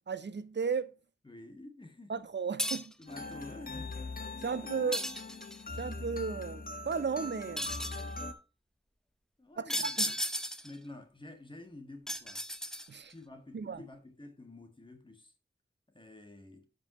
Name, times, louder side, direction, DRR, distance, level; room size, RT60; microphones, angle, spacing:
voice 1, 0.1-0.9 2.1-2.9 4.4-5.0 5.8-7.7 9.6-10.1 12.9-13.1 13.5-13.8, right 5 dB, 70° right, 0.6 m, -35 dB
voice 2, 1.2-2.3 3.0-4.2 4.4-4.8 9.4-10.1 10.6-12.5 13.1-15.3 15.9-16.7, left 2 dB, 25° left, 1.8 m, -50 dB
sound 1, 2.6-3.0 4.9-5.7 7.6-8.1 9.7-10.8 12.1-13.1, equal, 5° left, 0.9 m, -35 dB
sound 2, 3.1-8.3, left 2 dB, 50° left, 1.3 m, -41 dB
12.0 x 5.4 x 3.0 m
wide cardioid pair, 75°, 19 cm